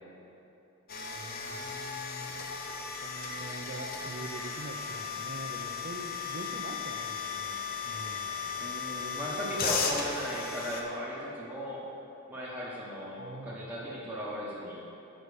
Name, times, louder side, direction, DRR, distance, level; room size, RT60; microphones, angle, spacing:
sound 1, 0.9-10.8, left 5 dB, 40° left, 0.6 m, -36 dB
voice 1, 1.1-1.7 3.0-8.5 13.2-13.7, right 2 dB, 45° right, 4 dB, 0.5 m, -44 dB
voice 2, 8.6-11.8 12.3-14.8, equal, 5° right, -8 dB, 1.0 m, -37 dB
5.4 x 5.1 x 6.4 m, 2.9 s
head